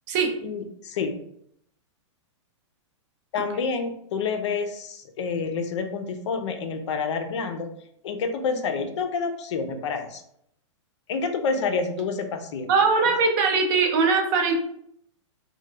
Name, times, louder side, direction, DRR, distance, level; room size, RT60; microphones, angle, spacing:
voice 1, 0.4-1.2 3.3-7.7 8.0-10.2 11.1-12.7, left 5 dB, 65° left, 6 dB, 0.5 m, -28 dB
voice 2, 12.7-14.5, right 4 dB, 40° right, 3 dB, 0.6 m, -21 dB
3.0 x 2.2 x 3.2 m, 0.71 s
hypercardioid pair, 150°, 16 cm